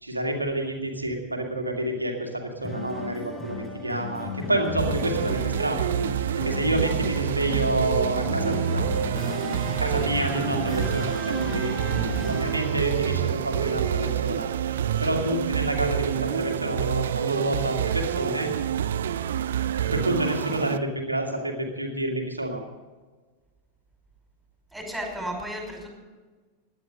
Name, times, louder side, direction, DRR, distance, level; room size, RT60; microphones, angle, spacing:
voice 1, 0.0-5.9 6.4-8.9 9.7-11.8 12.2-14.5 15.0-18.5 19.8-22.6, right 1 dB, 85° right, 2 dB, 2.4 m, -28 dB
sound 1, 2.6-13.0, left 2 dB, 20° left, 4.4 m, -34 dB
sound 2, 4.8-20.8, right 10 dB, 60° right, 0.6 m, -27 dB
voice 2, 24.7-25.9, right 1 dB, 5° right, 1 dB, 5.3 m, -33 dB
17.0 x 11.0 x 5.3 m, 1.3 s
figure-of-eight pair, 90°, 0 cm